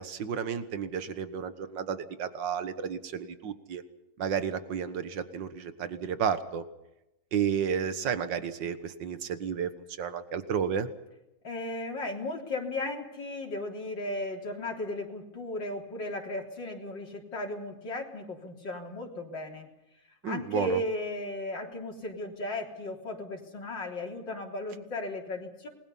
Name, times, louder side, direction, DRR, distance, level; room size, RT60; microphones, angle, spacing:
voice 1, 0.0-3.8 4.2-6.6 7.3-10.9 20.2-20.8, right 7 dB, 80° right, 11 dB, 2.0 m, -32 dB
voice 2, 11.4-19.7 20.3-25.7, left 1 dB, 90° left, 0 dB, 4.2 m, -35 dB
28.0 x 21.0 x 5.6 m, 0.90 s
omnidirectional pair, 1.9 m